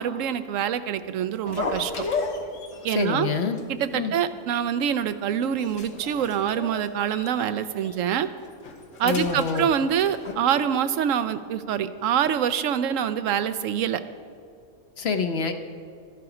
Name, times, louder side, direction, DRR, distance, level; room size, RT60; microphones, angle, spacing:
voice 1, 0.0-2.1 2.8-3.3 3.7-8.3 9.0-14.0, right 9 dB, 80° right, 12 dB, 1.0 m, -25 dB
sound 1, 1.4-3.0 3.4-3.6 3.9-4.0 4.6-5.1 5.4-7.5 7.8-8.0 8.4-10.3, left 4 dB, 80° left, 1.5 m, -34 dB
voice 2, 2.9-3.6 3.9-4.1 9.0-9.7 15.0-15.5, left 5 dB, 60° left, 7 dB, 1.0 m, -26 dB
12.5 x 12.0 x 4.9 m, 2.3 s
omnidirectional pair, 1.3 m